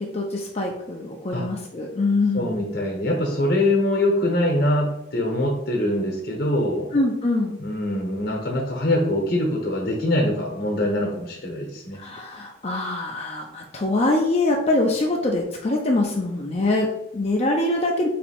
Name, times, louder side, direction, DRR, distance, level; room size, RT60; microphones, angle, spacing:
voice 1, 0.0-2.6 6.9-7.6 12.0-18.1, left 2 dB, 30° left, 0 dB, 0.5 m, -24 dB
voice 2, 2.3-6.9 7.6-12.0, left 1 dB, 55° left, 0 dB, 1.0 m, -23 dB
4.2 x 2.8 x 4.3 m, 0.80 s
head